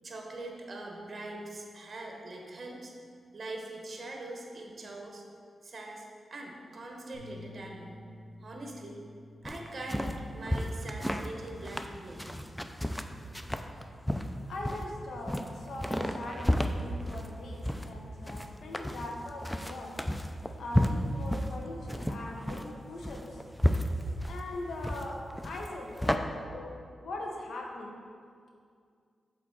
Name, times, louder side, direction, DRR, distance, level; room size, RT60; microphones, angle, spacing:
voice 1, 0.0-2.9 3.3-5.2 5.6-6.0 6.3-8.0 8.4-9.0 9.4-12.4, right 2 dB, 50° right, 1 dB, 0.9 m, -42 dB
sound 1, 7.1-13.4, left 2 dB, 55° left, 1.5 m, -53 dB
sound 2, 9.4-26.2, equal, 5° left, 0.4 m, -33 dB
voice 2, 14.5-20.0 20.6-23.4 24.3-28.0, left 2 dB, 80° left, 0 dB, 0.9 m, -41 dB
6.8 x 4.2 x 3.9 m, 2.2 s
cardioid pair, 60°, 0 cm